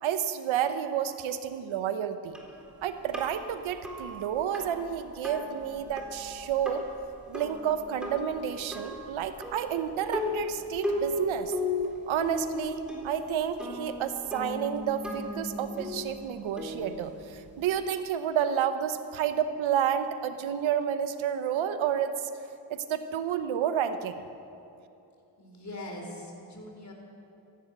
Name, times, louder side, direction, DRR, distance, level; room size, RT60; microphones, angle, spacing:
voice 1, 0.0-2.4 2.8-6.8 7.3-11.5 12.1-22.1 22.7-24.2, right 9 dB, 85° right, 10 dB, 1.0 m, -30 dB
sound 1, 2.3-17.7, left 1 dB, ahead, 3.9 m, -37 dB
voice 2, 25.4-26.9, left 1 dB, 35° left, 1 dB, 4.2 m, -41 dB
14.5 x 11.5 x 8.0 m, 2.8 s
cardioid pair, 50°, 46 cm